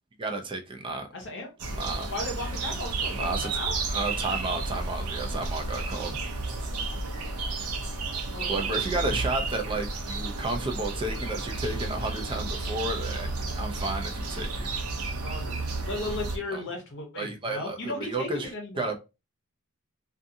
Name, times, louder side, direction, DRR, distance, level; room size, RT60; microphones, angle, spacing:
voice 1, 0.2-1.1 1.8-2.1 3.2-3.6 3.9-6.2 8.5-14.7 16.5-16.6 17.2-19.0, right 2 dB, 25° right, 0.4 m, -32 dB
voice 2, 1.1-1.5 2.1-3.8 8.3-8.6 8.9-9.1 15.2-18.9, left 2 dB, 55° left, 0.7 m, -36 dB
sound 1, 1.6-16.4, right 3 dB, 80° right, 0.6 m, -32 dB
2.6 x 2.4 x 2.6 m
head